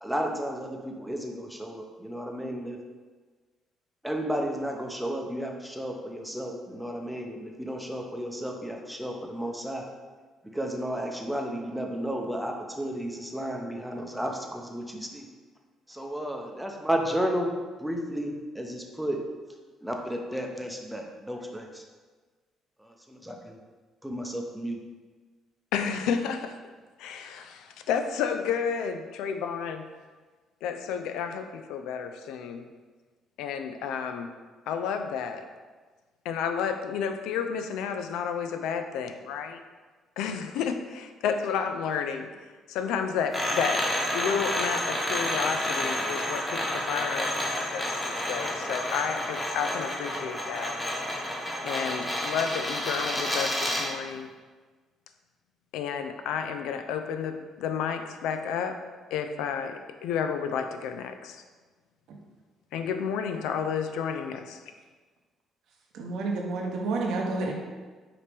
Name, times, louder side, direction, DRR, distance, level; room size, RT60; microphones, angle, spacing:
voice 1, 0.0-2.8 4.0-9.9 10.4-15.3 15.9-17.5 17.8-19.2 19.8-21.8 22.8-23.6 24.0-24.8, equal, 5° right, 2 dB, 0.7 m, -33 dB
voice 2, 25.7-26.6 27.0-29.8 30.6-32.6 33.4-34.3 34.7-35.4 36.3-39.6 40.2-42.3 42.7-50.8 51.6-54.3 55.7-58.8 59.1-61.4 62.7-64.6, left 7 dB, 80° left, 7 dB, 0.3 m, -31 dB
sound 1, 43.3-54.0, left 1 dB, 20° left, 1.0 m, -30 dB
voice 3, 65.9-67.5, right 3 dB, 70° right, 0 dB, 0.7 m, -29 dB
5.0 x 2.9 x 3.3 m, 1.4 s
supercardioid pair, 65°, 0 cm